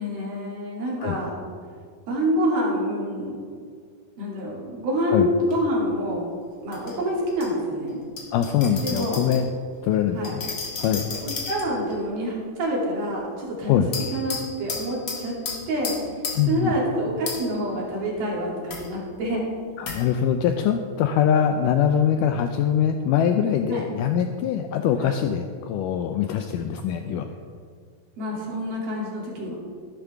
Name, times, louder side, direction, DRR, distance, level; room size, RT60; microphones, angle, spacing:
voice 1, 0.0-1.4 2.1-3.4 4.2-6.3 6.6-8.0 8.8-9.2 10.1-10.3 11.1-13.8 14.1-15.4 15.7-19.5 23.7-23.8 25.0-25.1 28.2-29.6, equal, 80° right, -4 dB, 4.7 m, -27 dB
sound 1, 5.5-5.6 6.7-7.5 8.2-9.5 10.2-11.9 13.9-16.6 17.3-17.6 18.7-18.9 19.9-20.1, left 4 dB, 45° left, 2.0 m, -34 dB
voice 2, 8.3-9.5 9.8-10.4 10.8-11.1 13.6-13.9 16.4-16.7 19.8-27.3, left 9 dB, 85° left, 6 dB, 1.9 m, -23 dB
14.5 x 11.5 x 3.5 m, 2.1 s
omnidirectional pair, 4.3 m